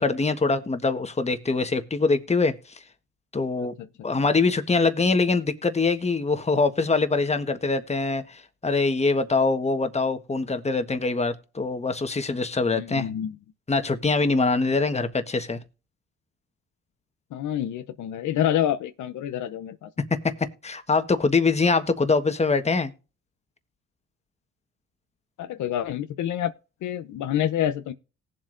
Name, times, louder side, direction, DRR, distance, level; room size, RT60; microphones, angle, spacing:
voice 1, 0.0-2.5 3.3-3.7 4.0-13.1 13.7-15.6 20.2-20.3 20.6-22.9, left 3 dB, 20° left, 1.4 m, -23 dB
voice 2, 12.7-13.4 17.3-19.9 25.4-26.5 26.8-27.9, left 11 dB, 75° left, 0.8 m, -27 dB
19.0 x 7.6 x 2.6 m
cardioid pair, 90°, 30 cm